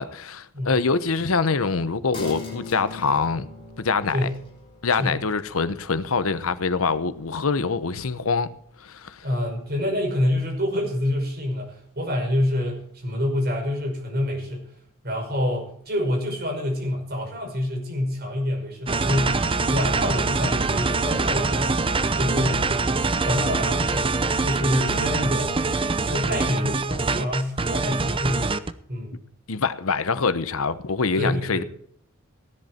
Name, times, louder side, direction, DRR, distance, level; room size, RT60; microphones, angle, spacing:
voice 1, 0.0-3.5 3.8-4.2 4.8-8.5 8.8-9.3 29.5-31.6, left 4 dB, 85° left, 0.9 m, -24 dB
sound 1, 2.1-9.2 9.5-9.6, left 4 dB, 25° left, 4.5 m, -42 dB
voice 2, 9.2-14.7 15.0-21.8 22.2-22.7 23.2-25.6 26.1-28.5 28.9-29.2 31.2-31.6, left 1 dB, 50° right, 5.4 m, -27 dB
sound 2, 18.9-28.7, right 3 dB, 25° right, 0.7 m, -24 dB
16.0 x 11.0 x 4.4 m
head